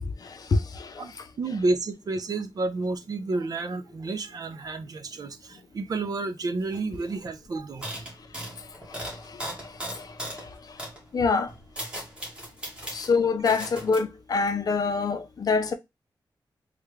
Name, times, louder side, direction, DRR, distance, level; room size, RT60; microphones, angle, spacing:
voice 1, 0.0-1.1 8.9-10.5 11.1-11.5 12.9-15.7, left 4 dB, 50° left, 0.5 m, -27 dB
voice 2, 1.0-8.1 12.8-12.9, right 3 dB, 50° right, 0.5 m, -31 dB
sound 1, 6.7-7.3 7.8-10.5 10.8-11.0 11.5-13.1 13.5-14.0, right 1 dB, 15° right, 1.3 m, -37 dB
3.4 x 2.3 x 3.1 m
wide cardioid pair, 135°, 8 cm